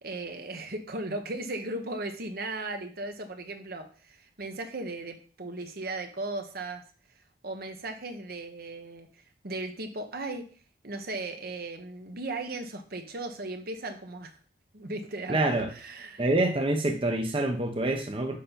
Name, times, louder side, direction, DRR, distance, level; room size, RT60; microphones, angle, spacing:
voice 1, 0.0-6.8 7.4-9.1 9.4-10.5 10.8-14.3 14.7-16.2, right 2 dB, 55° right, 6 dB, 1.1 m, -37 dB
voice 2, 15.3-15.7 16.2-18.4, right 2 dB, 30° right, 4 dB, 0.8 m, -26 dB
6.7 x 5.6 x 5.2 m, 0.42 s
head